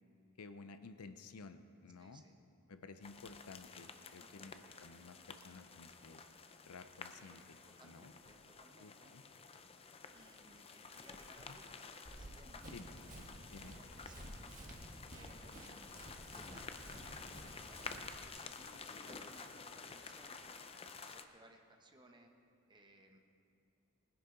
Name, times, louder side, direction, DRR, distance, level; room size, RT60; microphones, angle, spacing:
voice 1, 0.4-2.2 2.7-6.2 6.6-7.6 7.8-8.1 8.8-9.2 11.5-11.6 12.7-12.9 13.5-13.8, left 4 dB, 75° left, 11 dB, 0.6 m, -54 dB
voice 2, 2.0-2.4 4.2-4.5 7.3-7.4 7.6-9.2 10.0-14.6 15.1-16.0 16.3-20.6 21.0-22.3 22.7-23.2, right 1 dB, 20° right, 3 dB, 1.0 m, -63 dB
sound 1, 3.0-21.2, left 4 dB, 25° left, 0.5 m, -52 dB
sound 2, 10.9-12.8 13.3-13.6 13.9-14.7 15.8-15.9, left 1 dB, 50° left, 1.1 m, -61 dB
Run, 12.0-18.3, right 1 dB, 35° right, 1.4 m, -53 dB
20.0 x 10.0 x 3.9 m, 2.6 s
head